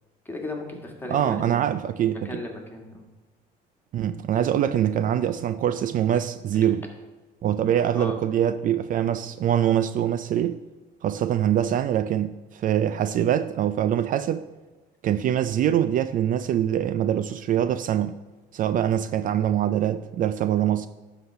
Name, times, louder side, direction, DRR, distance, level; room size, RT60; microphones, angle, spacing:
voice 1, 0.3-1.6 2.3-3.0 7.9-8.2, left 2 dB, 10° left, 1.7 m, -35 dB
voice 2, 1.1-2.4 3.9-6.8 7.4-10.6 11.0-14.4 15.0-18.2 18.5-20.9, right 10 dB, 55° right, 0.4 m, -24 dB
11.5 x 4.0 x 5.7 m
cardioid pair, 110°, 17 cm